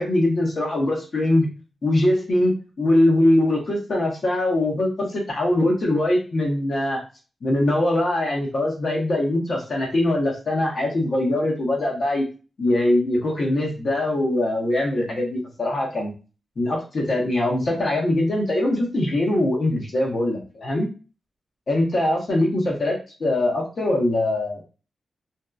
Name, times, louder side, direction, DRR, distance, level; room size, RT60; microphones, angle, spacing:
voice 1, 0.0-1.5 1.8-7.0 7.4-12.2 12.6-16.1 16.6-20.9 21.7-24.6, left 1 dB, 60° left, -2 dB, 0.8 m, -22 dB
2.6 x 2.2 x 2.3 m, 0.34 s
cardioid pair, 80°, 0 cm